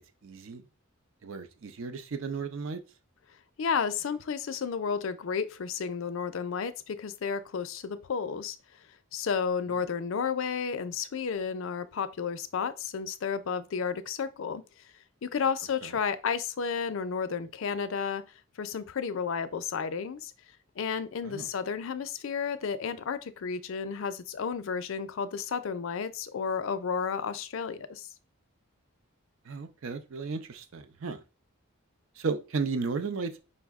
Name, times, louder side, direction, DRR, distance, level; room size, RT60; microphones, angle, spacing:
voice 1, 0.2-0.6 1.2-2.8 21.2-21.5 29.5-31.2 32.2-33.4, right 4 dB, 65° right, 0.5 m, -34 dB
voice 2, 3.6-8.6 9.1-14.6 15.2-18.2 18.6-20.3 20.8-28.1, left 6 dB, 65° left, 0.4 m, -32 dB
5.4 x 2.0 x 3.5 m
head